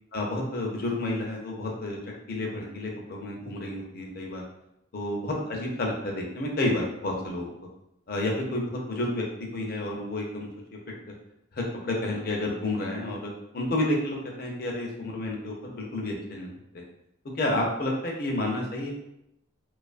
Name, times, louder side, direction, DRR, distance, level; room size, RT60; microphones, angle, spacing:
voice 1, 0.1-2.0 2.3-4.4 4.9-7.5 8.1-9.2 9.5-10.8 11.5-16.8 17.4-18.9, left 1 dB, 45° left, -1 dB, 0.5 m, -30 dB
2.5 x 2.3 x 2.4 m, 0.83 s
head